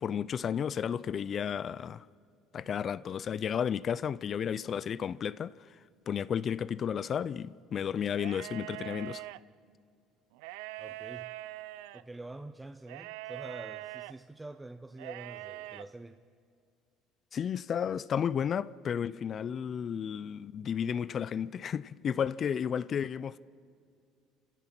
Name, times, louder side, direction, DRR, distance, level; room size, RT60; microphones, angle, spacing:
voice 1, 0.0-2.1 2.5-5.5 6.1-9.2 17.3-23.4, left 8 dB, 40° left, 0.4 m, -32 dB
sound 1, 8.1-9.4 10.3-12.0 12.9-14.1 14.9-15.8, right 17 dB, 90° right, 0.5 m, -43 dB
voice 2, 10.8-11.4 11.9-16.2, right 2 dB, 10° right, 0.6 m, -46 dB
27.5 x 16.0 x 6.0 m
cardioid pair, 105°, 0 cm